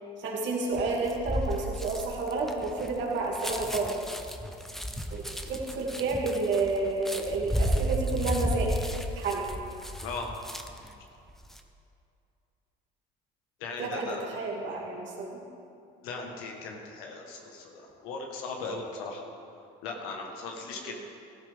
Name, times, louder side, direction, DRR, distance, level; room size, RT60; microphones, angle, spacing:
voice 1, 0.2-4.0 5.1-8.8 9.2-9.4 13.8-15.5 20.9-21.1, right 3 dB, 60° right, -3 dB, 2.6 m, -30 dB
sound 1, 0.7-10.9 11.3-11.6, equal, ahead, 0.9 m, -33 dB
voice 2, 13.6-14.2 16.0-19.2 19.8-21.0, left 3 dB, 80° left, 1 dB, 1.5 m, -38 dB
14.0 x 12.0 x 3.6 m, 2.6 s
supercardioid pair, 80°, 21 cm